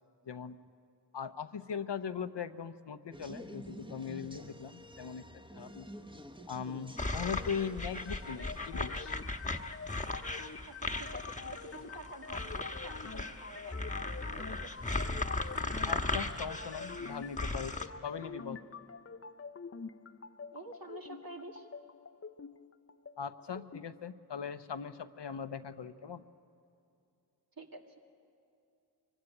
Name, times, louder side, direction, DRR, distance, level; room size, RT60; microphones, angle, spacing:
voice 1, 1.1-5.2 5.5-5.9 6.5-9.1 15.8-18.6 23.2-26.2, left 7 dB, 75° left, 12 dB, 0.8 m, -40 dB
sound 1, 3.1-8.7, equal, 10° right, 1.1 m, -49 dB
sound 2, 7.0-17.9, left 2 dB, 15° left, 1.3 m, -37 dB
sound 3, 7.9-23.9, left 5 dB, 35° left, 0.7 m, -47 dB
voice 2, 10.7-14.7 20.5-21.7 27.6-27.8, right 2 dB, 55° right, 2 dB, 2.3 m, -49 dB
23.0 x 16.5 x 9.8 m, 2.6 s
cardioid pair, 45°, 42 cm